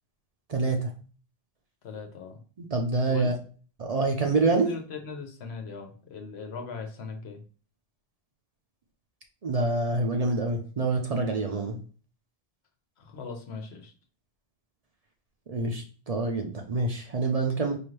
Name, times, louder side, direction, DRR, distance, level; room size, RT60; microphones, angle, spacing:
voice 1, 0.5-0.9 2.6-3.3 3.8-4.7 9.4-11.8 15.5-17.8, right 3 dB, 45° right, 3 dB, 0.6 m, -26 dB
voice 2, 1.8-2.4 3.1-3.3 4.3-4.4 4.6-7.4 13.0-13.9, left 5 dB, 85° left, 4 dB, 1.1 m, -39 dB
4.7 x 2.5 x 3.1 m, 0.40 s
omnidirectional pair, 1.1 m